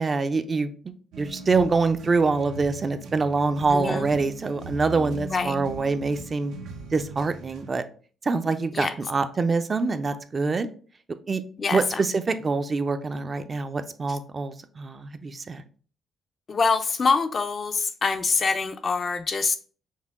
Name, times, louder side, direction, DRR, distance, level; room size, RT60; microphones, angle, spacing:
voice 1, 0.0-6.6 6.9-7.8 8.2-10.7 11.3-11.4 11.7-15.6, right 4 dB, 35° right, 9 dB, 0.5 m, -25 dB
sound 1, 1.1-7.7, right 2 dB, 85° right, 0.7 m, -39 dB
voice 2, 3.7-4.0 5.3-5.6 8.8-8.9 11.6-12.1 16.5-19.6, left 4 dB, 40° left, 8 dB, 0.4 m, -25 dB
5.5 x 2.2 x 3.6 m, 0.41 s
cardioid pair, 90°, 0 cm